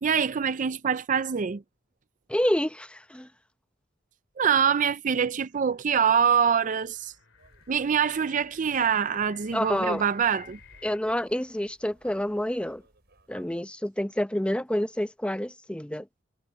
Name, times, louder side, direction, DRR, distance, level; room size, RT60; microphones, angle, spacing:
voice 1, 0.0-1.6 4.4-7.1 7.7-10.6, right 7 dB, 40° right, 0.5 m, -24 dB
voice 2, 2.3-3.3 9.5-10.0 10.8-12.8 13.3-16.1, left 1 dB, 5° left, 0.8 m, -28 dB
sound 1, 5.4-11.0, left 7 dB, 70° left, 3.4 m, -55 dB
sound 2, 7.4-13.6, right 2 dB, 60° right, 5.8 m, -61 dB
head